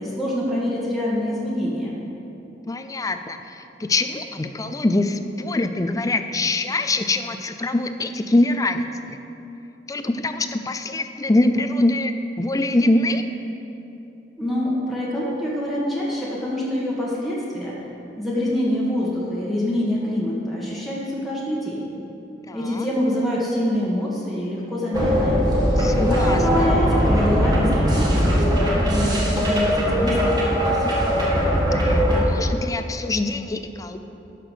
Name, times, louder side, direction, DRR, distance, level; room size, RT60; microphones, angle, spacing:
voice 1, 0.0-1.9 14.4-17.8 18.2-21.9 22.5-25.4 26.1-30.9, left 1 dB, ahead, -7 dB, 1.3 m, -26 dB
voice 2, 2.7-9.2 9.9-13.2 21.8-21.9 22.5-22.9 25.8-26.4 30.8-31.5 31.8-34.0, left 2 dB, 20° left, 8 dB, 0.4 m, -24 dB
sound 1, 24.9-32.2, equal, 25° right, 1.5 m, -20 dB
11.5 x 5.9 x 4.9 m, 2.9 s
head